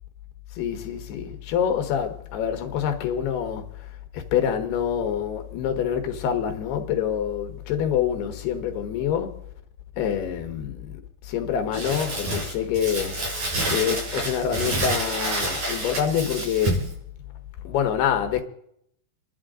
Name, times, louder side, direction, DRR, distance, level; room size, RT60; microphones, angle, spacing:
voice 1, 0.5-9.4 10.0-13.2 13.7-16.8 17.6-18.4, left 8 dB, 85° left, 3.4 m, -26 dB
Crumpling crinkling, 11.7-16.9, right 2 dB, 50° right, 5.9 m, -28 dB
29.0 x 11.5 x 3.8 m
omnidirectional pair, 4.4 m